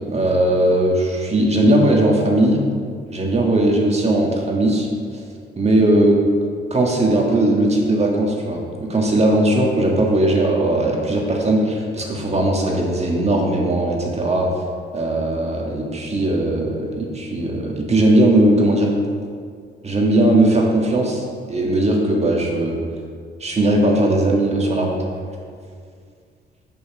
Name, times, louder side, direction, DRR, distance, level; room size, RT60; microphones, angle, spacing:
voice 1, 0.1-2.6 3.1-4.9 5.1-5.2 5.6-6.2 6.7-14.5 14.9-18.9 19.8-22.8 23.4-25.0, right 1 dB, 30° right, 0 dB, 1.5 m, -18 dB
6.8 x 5.5 x 5.0 m, 2.1 s
cardioid pair, 90°, 20 cm